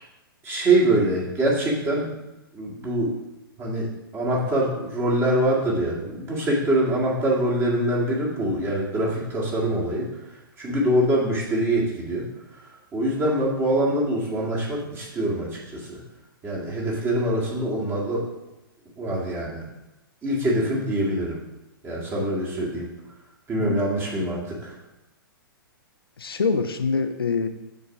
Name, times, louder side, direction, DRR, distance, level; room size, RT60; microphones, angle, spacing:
voice 1, 0.4-2.1 2.5-3.1 3.6-3.9 4.1-10.1 10.6-12.3 12.9-16.0 16.4-18.2 19.0-19.6 20.2-21.4 21.8-22.9 23.5-24.7, right 1 dB, 20° right, -4 dB, 1.9 m, -24 dB
voice 2, 23.6-23.9 26.2-27.5, left 4 dB, 85° left, 8 dB, 0.7 m, -25 dB
6.8 x 3.9 x 4.8 m, 0.95 s
figure-of-eight pair, 120°, 12 cm